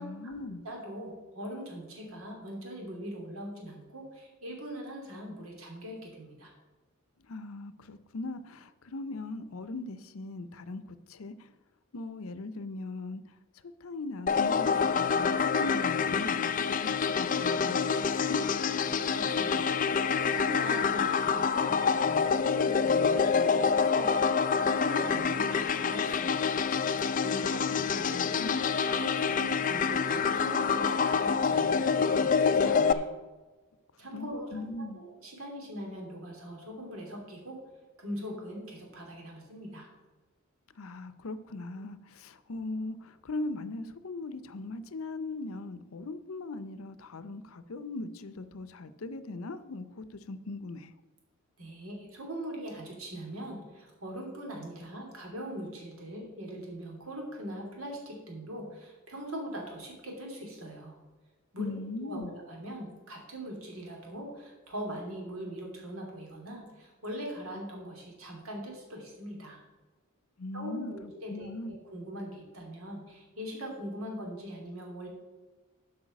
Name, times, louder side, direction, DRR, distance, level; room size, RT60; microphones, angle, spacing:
voice 1, 0.0-0.6 7.3-11.5 11.9-13.2 13.8-18.5 27.3-28.6 34.1-35.0 40.8-50.9 61.6-62.3 70.4-71.8, left 2 dB, 80° left, 13 dB, 0.6 m, -39 dB
voice 2, 0.6-6.5 18.9-26.5 27.2-28.5 29.0-33.2 34.0-37.6 38.0-39.9 51.6-61.0 61.5-61.7 62.0-69.6 70.5-75.1, equal, 80° right, 0 dB, 2.9 m, -41 dB
sound 1, 14.3-32.9, left 6 dB, 40° left, 0.4 m, -27 dB
8.1 x 5.6 x 7.8 m, 1.3 s
head